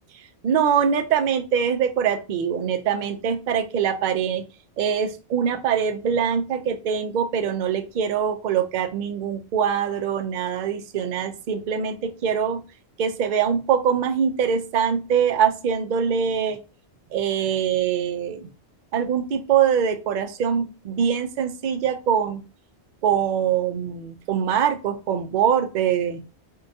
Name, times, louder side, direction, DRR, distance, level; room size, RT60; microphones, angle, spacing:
voice 1, 0.4-4.4 4.8-12.6 13.0-16.6 17.1-18.5 18.9-22.4 23.0-26.2, right 8 dB, 55° right, 7 dB, 0.6 m, -23 dB
4.5 x 2.2 x 2.6 m, 0.31 s
omnidirectional pair, 1.1 m